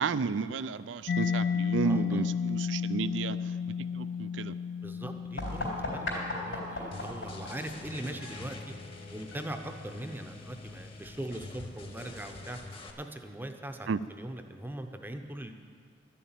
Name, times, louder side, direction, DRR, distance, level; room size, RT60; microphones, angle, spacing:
voice 1, 0.0-3.5 3.9-4.5 13.9-14.0, right 5 dB, 90° right, 15 dB, 0.4 m, -32 dB
Mallet percussion, 1.1-8.6, left 6 dB, 60° left, 0.3 m, -34 dB
voice 2, 1.8-2.3 4.8-8.7 9.1-12.6 13.0-15.5, right 1 dB, 10° right, 6 dB, 0.7 m, -41 dB
sound 1, 5.4-10.9, left 1 dB, 80° left, 3.7 m, -39 dB
sound 2, 6.9-12.9, left 2 dB, 30° left, 1.0 m, -46 dB
12.0 x 7.1 x 8.9 m, 2.1 s
head